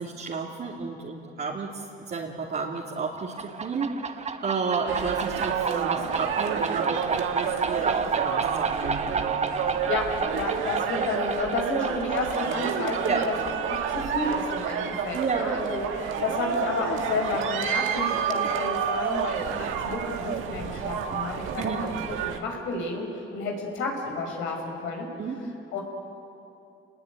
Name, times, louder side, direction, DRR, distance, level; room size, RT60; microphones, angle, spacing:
voice 1, 0.0-9.6 13.0-13.2 15.1-15.5 21.6-21.8 25.2-25.4, right 4 dB, 50° right, -5 dB, 2.9 m, -31 dB
sound 1, 3.2-16.6, right 4 dB, 35° right, 1.4 m, -32 dB
sound 2, 4.9-22.4, right 7 dB, 85° right, 1.9 m, -30 dB
voice 2, 10.3-13.3 13.7-21.9 22.2-23.0 23.3-25.1 25.7-25.8, left 3 dB, 85° left, 1 dB, 5.8 m, -31 dB
28.5 x 20.5 x 9.3 m, 2.8 s
cardioid pair, 90°, 20 cm